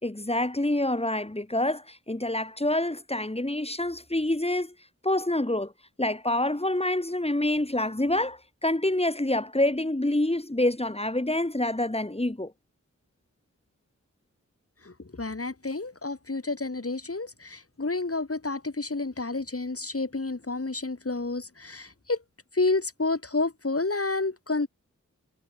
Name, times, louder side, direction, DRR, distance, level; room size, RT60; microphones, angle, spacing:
voice 1, 0.0-4.7 5.0-5.7 6.0-12.5, left 1 dB, 20° left, 3.0 m, -27 dB
voice 2, 14.9-22.2 22.5-24.7, left 3 dB, 45° left, 5.4 m, -30 dB
cardioid pair, 45°, 31 cm